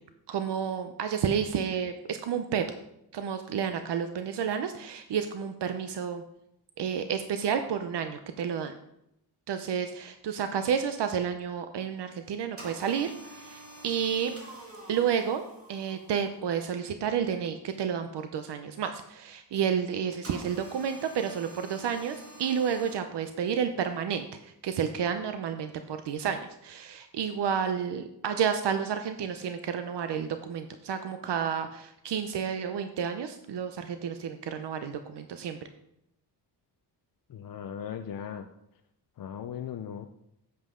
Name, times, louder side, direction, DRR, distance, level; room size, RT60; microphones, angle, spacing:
voice 1, 0.3-2.6 3.1-6.2 6.8-8.7 9.5-14.4 14.9-24.3 24.6-35.6, right 7 dB, 80° right, 8 dB, 0.8 m, -31 dB
sound 1, 12.6-16.5 20.2-23.0, right 1 dB, 35° right, 2.0 m, -47 dB
voice 2, 37.3-38.5 39.2-40.1, left 8 dB, 55° left, 6 dB, 0.6 m, -38 dB
10.5 x 8.0 x 3.7 m, 0.79 s
wide cardioid pair, 150°, 40 cm